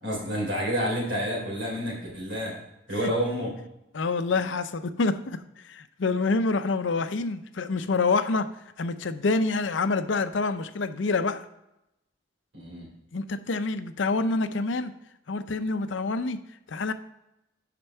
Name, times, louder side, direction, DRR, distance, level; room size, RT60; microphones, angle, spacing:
voice 1, 0.0-2.6 2.9-3.5 12.5-12.9, equal, 70° right, -1 dB, 3.5 m, -29 dB
voice 2, 3.9-8.5 8.8-11.5 13.1-14.9 15.3-16.4 16.7-16.9, left 3 dB, 75° left, 11 dB, 0.6 m, -27 dB
8.9 x 5.8 x 4.4 m, 0.88 s
head